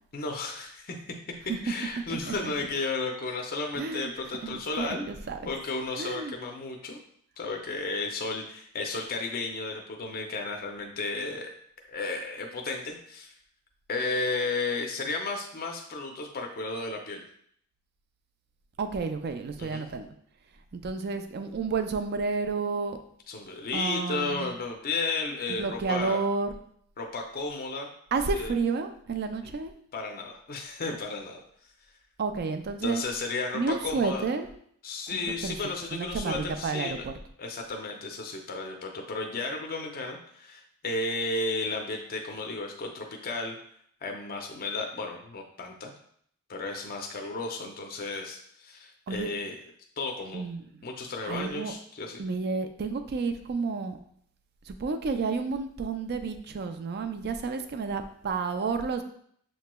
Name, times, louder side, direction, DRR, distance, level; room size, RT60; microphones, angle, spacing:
voice 1, 0.1-1.0 1.6-5.0 5.5-7.0 7.4-11.5 11.9-13.3 13.9-17.2 19.6-19.8 23.3-26.2 27.0-27.9 28.3-28.5 29.9-31.4 32.8-34.3 34.8-37.1 37.4-43.6 44.0-45.9 46.5-49.6 50.0-50.4 50.8-52.2, left 3 dB, 40° left, 2 dB, 0.5 m, -33 dB
voice 2, 2.1-2.5 3.8-4.1 4.4-5.5 6.0-6.3 18.8-20.1 20.7-23.0 23.7-24.5 25.5-26.6 28.1-29.7 32.2-33.0 33.5-34.5 35.1-35.6 35.9-37.1 49.1-49.3 50.3-50.7 51.3-51.7 52.2-54.0 54.7-59.0, right 4 dB, 45° right, 7 dB, 0.4 m, -31 dB
6.5 x 3.0 x 2.2 m, 0.64 s
head